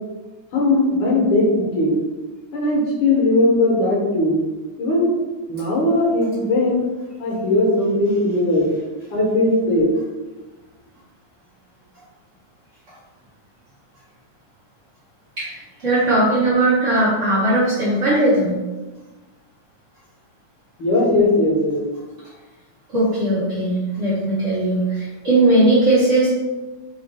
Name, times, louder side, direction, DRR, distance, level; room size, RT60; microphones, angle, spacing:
voice 1, 0.5-2.0 2.5-4.4 4.8-5.2 5.5-6.9 7.2-8.7 9.1-9.9 20.8-21.8, left 2 dB, 55° left, -3 dB, 1.5 m, -18 dB
voice 2, 15.4-18.6 22.9-26.3, right 1 dB, 90° right, -10 dB, 0.6 m, -18 dB
4.5 x 3.2 x 3.3 m, 1.2 s
omnidirectional pair, 3.4 m